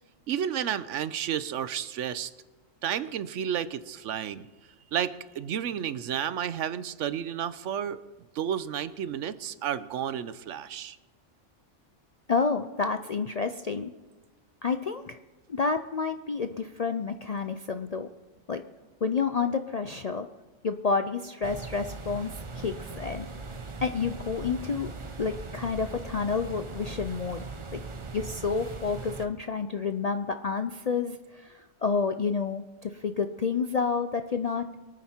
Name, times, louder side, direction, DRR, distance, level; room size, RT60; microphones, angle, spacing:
voice 1, 0.3-2.3 2.8-4.4 4.9-8.0 8.3-11.0, right 9 dB, 75° right, 15 dB, 1.0 m, -31 dB
voice 2, 12.3-13.9 14.6-15.2 15.5-18.1 18.5-18.6 19.0-20.3 20.6-23.3 23.8-24.9 25.2-27.5 27.7-27.8 28.1-34.6, left 5 dB, 55° left, 8 dB, 0.4 m, -29 dB
sound 1, 21.4-29.3, right 3 dB, 30° right, 0.8 m, -40 dB
24.0 x 9.2 x 4.4 m, 1.2 s
omnidirectional pair, 1.3 m